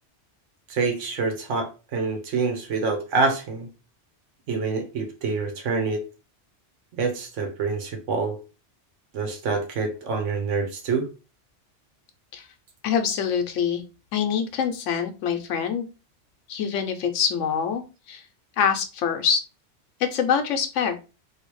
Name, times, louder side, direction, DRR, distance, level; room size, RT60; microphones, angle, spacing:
voice 1, 0.7-3.7 4.5-6.0 6.9-8.4 9.1-11.1, right 4 dB, 80° right, 4 dB, 1.2 m, -26 dB
voice 2, 12.8-13.8 14.1-15.9 16.5-17.8 18.1-18.2 18.6-19.4 20.0-20.9, left 7 dB, 90° left, 7 dB, 1.0 m, -24 dB
3.2 x 2.7 x 3.0 m, 0.31 s
omnidirectional pair, 1.3 m